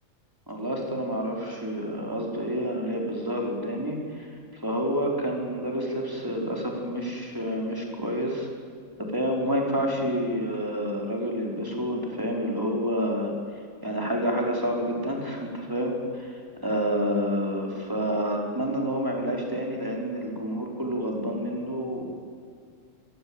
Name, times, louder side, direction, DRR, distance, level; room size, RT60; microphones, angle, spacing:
voice 1, 0.5-8.5 9.0-13.3 13.8-22.0, equal, 15° right, 0 dB, 5.1 m, -29 dB
25.0 x 20.5 x 9.0 m, 2.3 s
omnidirectional pair, 1.4 m